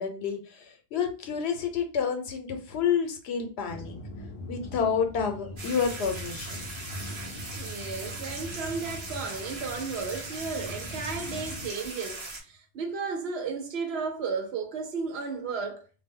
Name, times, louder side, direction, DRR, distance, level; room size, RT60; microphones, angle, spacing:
voice 1, 0.0-4.0 4.5-6.7, left 7 dB, 90° left, 0.9 m, -29 dB
sound 1, 3.7-11.7, left 1 dB, 50° left, 0.3 m, -41 dB
sound 2, 5.6-12.4, right 2 dB, 35° right, 0.5 m, -40 dB
voice 2, 7.5-15.9, right 5 dB, 85° right, 0.9 m, -34 dB
2.2 x 2.1 x 3.5 m
omnidirectional pair, 1.0 m